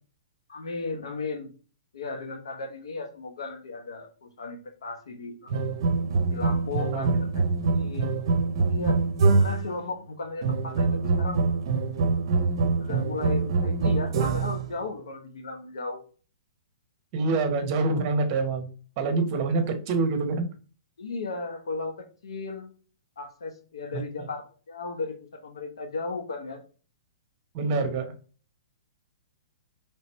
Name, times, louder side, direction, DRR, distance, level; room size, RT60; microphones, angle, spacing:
voice 1, 0.5-1.5 1.9-5.7 6.3-7.4 7.7-8.1 8.6-9.0 9.4-11.4 12.8-16.0 21.0-22.7 23.2-26.6, left 3 dB, 85° left, 4 dB, 0.9 m, -35 dB
sound 1, 5.5-9.7 10.4-14.7, right 4 dB, 60° right, 0.7 m, -24 dB
voice 2, 17.1-18.7 19.0-20.5 23.9-24.3 27.5-28.1, right 3 dB, 35° right, 7 dB, 1.0 m, -26 dB
3.2 x 3.0 x 4.4 m, 0.39 s
hypercardioid pair, 145°, 3 cm